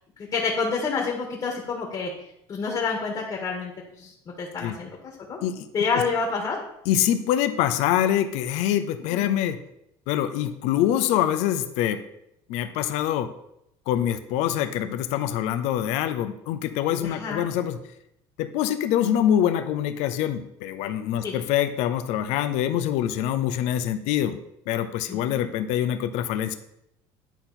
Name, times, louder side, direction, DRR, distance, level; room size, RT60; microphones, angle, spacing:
voice 1, 0.3-2.1 2.5-3.7 4.0-4.1 4.4-4.9 5.3-5.4 5.7-6.6 9.1-9.3 17.0-17.5 21.2-21.4 25.1-25.5, left 4 dB, 40° left, -1 dB, 1.7 m, -28 dB
voice 2, 6.9-9.6 10.1-12.0 12.5-13.3 13.9-17.8 18.4-24.4 24.7-26.5, left 11 dB, 80° left, 10 dB, 0.6 m, -25 dB
10.0 x 4.0 x 4.2 m, 0.79 s
cardioid pair, 120°, 11 cm